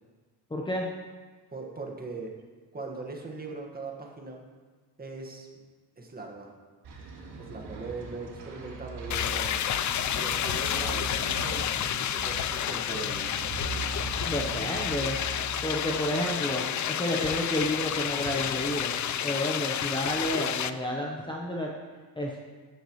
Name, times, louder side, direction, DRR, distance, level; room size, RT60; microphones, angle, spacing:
voice 1, 0.5-0.9 14.3-15.2 15.6-18.9 19.2-21.7 22.2-22.4, left 1 dB, 10° left, -2 dB, 1.0 m, -30 dB
voice 2, 1.5-2.3 2.7-4.4 5.0-5.5 6.0-6.5 7.4-9.7 10.1-11.7 12.1-13.3, right 3 dB, 20° right, 0 dB, 1.8 m, -40 dB
sound 1, 6.8-19.1, right 3 dB, 65° right, 3.7 m, -41 dB
sound 2, 9.1-20.7, left 10 dB, 45° left, 0.5 m, -30 dB
15.5 x 11.0 x 3.2 m, 1.4 s
cardioid pair, 155°, 42 cm